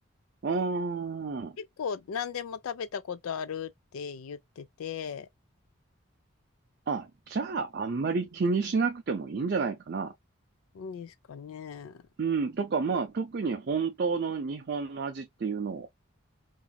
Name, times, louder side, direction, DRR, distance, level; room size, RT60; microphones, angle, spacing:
voice 1, 0.4-1.5 6.9-10.1 12.2-15.9, right 4 dB, 50° right, 0.4 m, -30 dB
voice 2, 1.6-5.3 10.7-12.0, left 7 dB, 90° left, 0.4 m, -37 dB
3.0 x 2.6 x 2.2 m
head